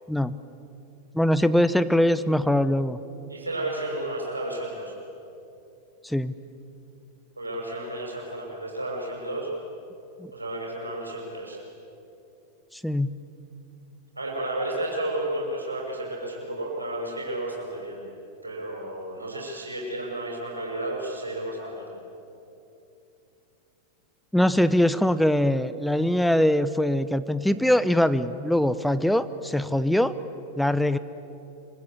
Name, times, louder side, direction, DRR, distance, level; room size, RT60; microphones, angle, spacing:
voice 1, 0.1-0.4 1.1-3.0 6.0-6.3 10.2-10.3 12.7-13.1 24.3-30.1 30.6-31.0, left 1 dB, ahead, 13 dB, 0.9 m, -22 dB
voice 2, 3.3-5.0 7.4-9.5 10.3-11.6 14.2-18.1 18.4-21.9, right 1 dB, 80° right, -1 dB, 6.2 m, -32 dB
26.5 x 24.0 x 8.6 m, 2.8 s
figure-of-eight pair, 90°, 0 cm